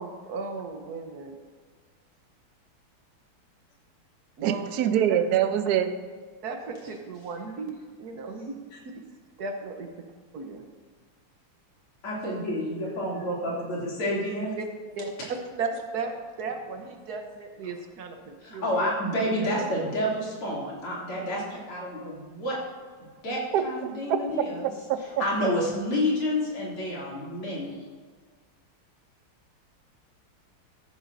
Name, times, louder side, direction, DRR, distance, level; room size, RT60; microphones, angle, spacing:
voice 1, 0.0-1.4 4.4-4.7 6.4-8.5 9.4-10.1 10.3-10.6 14.6-14.7 15.0-18.9 19.4-19.7, right 4 dB, 60° right, 5 dB, 1.2 m, -35 dB
voice 2, 4.4-5.9 23.5-24.2 24.6-25.0 25.4-25.5, right 9 dB, 75° right, 9 dB, 0.9 m, -25 dB
voice 3, 12.0-14.5 18.4-22.6 23.2-24.7 25.2-27.8, left 1 dB, 85° left, -5 dB, 3.6 m, -29 dB
13.5 x 11.5 x 2.6 m, 1.5 s
omnidirectional pair, 2.3 m